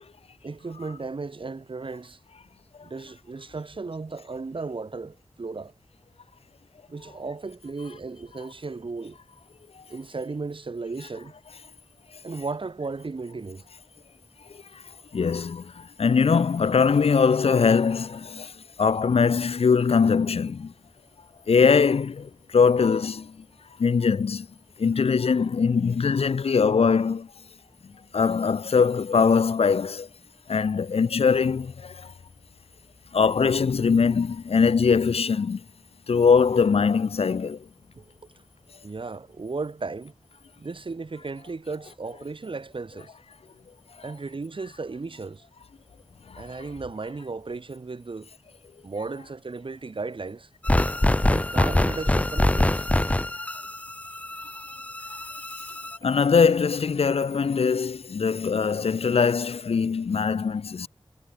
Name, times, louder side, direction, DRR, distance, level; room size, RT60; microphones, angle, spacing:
voice 1, 0.4-2.2 2.8-5.7 6.9-9.2 9.9-11.3 12.2-13.7 38.0-38.2 38.8-40.1 40.6-43.1 44.0-45.4 46.4-48.3 48.8-50.5 51.3-52.9, right 3 dB, 60° right, 1.3 m, -35 dB
voice 2, 15.1-18.5 18.8-20.7 21.5-23.3 23.8-24.5 24.8-27.3 28.1-30.1 30.5-32.1 33.1-35.6 36.1-37.6 56.0-60.9, left 5 dB, 85° left, 0.8 m, -22 dB
sound 1, 50.6-56.0, left 1 dB, 15° left, 0.4 m, -24 dB
cardioid pair, 45°, 10 cm